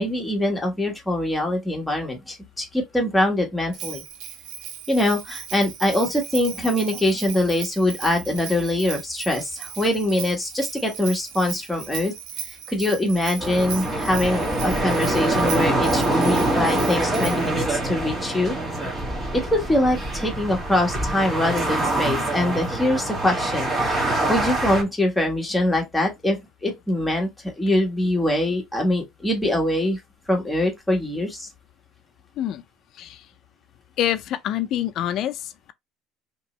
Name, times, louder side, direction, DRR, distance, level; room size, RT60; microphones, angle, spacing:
voice 1, 0.0-4.0 4.9-12.1 12.7-18.6 19.3-24.0 24.3-30.0 30.3-31.5, left 1 dB, 5° left, 1.3 m, -23 dB
Bell, 3.7-17.5, right 8 dB, 80° right, 0.6 m, -37 dB
sound 1, 13.4-24.8, right 1 dB, 25° right, 1.4 m, -24 dB
voice 2, 34.0-35.7, left 12 dB, 55° left, 0.5 m, -26 dB
3.0 x 2.6 x 4.1 m
cardioid pair, 130°, 0 cm